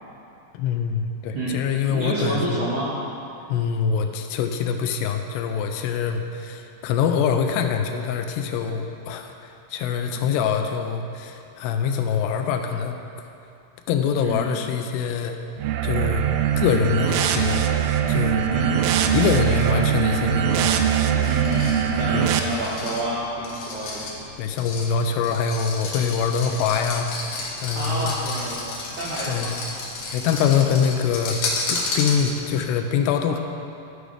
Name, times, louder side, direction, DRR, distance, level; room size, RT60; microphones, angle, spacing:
voice 1, 0.5-2.4 3.5-13.0 13.9-15.4 15.8-16.2 16.6-17.6 18.1-18.4 19.1-20.7 22.1-22.3 24.4-27.1 27.6-28.1 29.3-29.5 30.1-31.4 31.7-33.4, left 7 dB, 85° left, 5 dB, 2.6 m, -24 dB
voice 2, 1.9-2.9 10.1-10.3 14.2-14.5 18.5-18.9 19.5-19.8 21.2-24.2 26.5-26.6 27.7-29.6, right 1 dB, 75° right, -7 dB, 1.8 m, -29 dB
sound 1, 15.6-22.4, right 9 dB, 90° right, 2.1 m, -22 dB
sound 2, 21.2-32.6, left 3 dB, 65° left, 2.2 m, -32 dB
13.0 x 5.1 x 5.0 m, 2.7 s
omnidirectional pair, 4.9 m